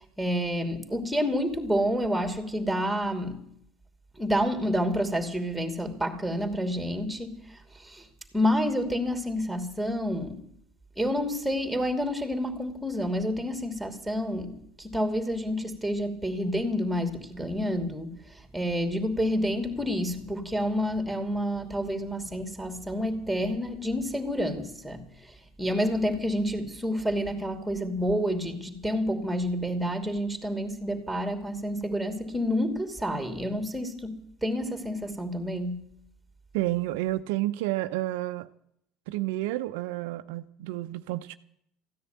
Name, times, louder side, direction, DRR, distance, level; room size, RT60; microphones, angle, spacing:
voice 1, 0.2-3.5 4.2-8.1 8.3-10.5 11.0-35.9, equal, 5° right, 2.8 m, -29 dB
voice 2, 36.5-38.5 39.1-41.3, right 16 dB, 75° right, 0.7 m, -30 dB
14.5 x 10.0 x 9.3 m
hypercardioid pair, 85°, 0 cm